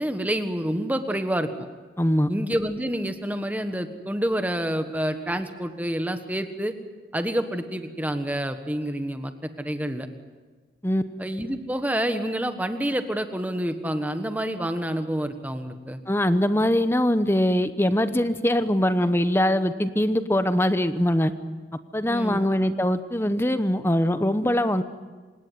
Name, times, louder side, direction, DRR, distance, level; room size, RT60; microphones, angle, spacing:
voice 1, 0.0-1.7 2.3-6.7 7.1-10.1 11.2-16.0 22.1-22.4, equal, 10° right, 8 dB, 1.4 m, -28 dB
voice 2, 2.0-2.3 10.8-11.0 16.1-21.3 21.9-24.8, left 1 dB, 15° left, 11 dB, 0.9 m, -22 dB
28.0 x 17.5 x 9.3 m, 1.4 s
head